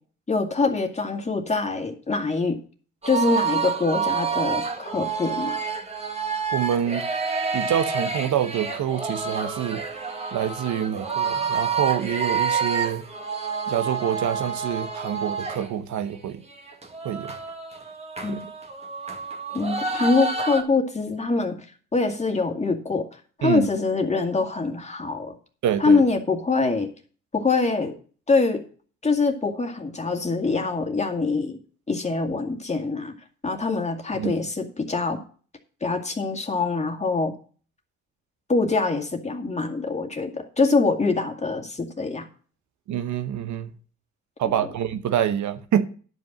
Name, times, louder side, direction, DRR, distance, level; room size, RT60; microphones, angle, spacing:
voice 1, 0.3-2.6 3.1-5.6 18.2-18.5 19.5-21.7 21.9-23.1 23.4-25.3 25.8-26.9 27.3-27.9 28.3-28.6 29.0-31.6 31.9-33.1 33.4-35.2 35.8-37.3 38.5-42.3, left 3 dB, 20° left, 2.2 m, -24 dB
sound 1, 3.0-15.7 16.1-16.2 16.5-20.6, right 5 dB, 20° right, 1.7 m, -28 dB
voice 2, 6.5-7.0 7.5-10.1 10.3-13.0 13.7-16.4 17.0-17.3 18.3-18.4 23.4-23.7 25.6-26.0 34.1-34.3 42.9-43.7 44.4-45.9, right 10 dB, 70° right, 1.0 m, -26 dB
11.0 x 5.3 x 7.3 m
cardioid pair, 90°, 30 cm